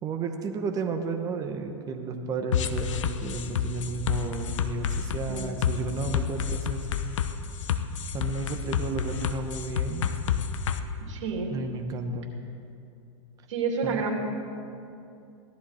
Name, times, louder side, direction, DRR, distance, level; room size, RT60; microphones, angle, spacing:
voice 1, 0.0-6.9 8.1-10.1 11.5-12.3 13.8-14.0, right 3 dB, 20° right, 5 dB, 0.9 m, -32 dB
sound 1, 2.5-10.8, left 8 dB, 80° left, 0.8 m, -29 dB
voice 2, 11.1-11.5 13.5-14.2, right 5 dB, 75° right, 1 dB, 2.8 m, -29 dB
17.0 x 12.5 x 4.3 m, 2.6 s
hypercardioid pair, 140°, 16 cm